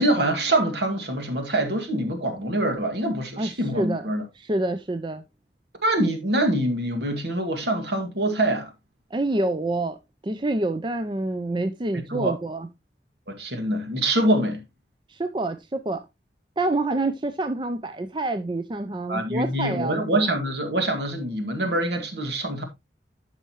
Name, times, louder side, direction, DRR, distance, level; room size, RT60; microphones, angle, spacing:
voice 1, 0.0-4.3 5.8-8.7 12.1-12.3 13.3-14.6 19.1-22.6, right 1 dB, 65° right, 2.0 m, -25 dB
voice 2, 3.4-4.1 4.4-5.2 9.1-10.0 10.2-12.7 15.1-16.1 16.6-20.3, right 2 dB, 25° right, 0.4 m, -27 dB
13.0 x 5.6 x 2.9 m
head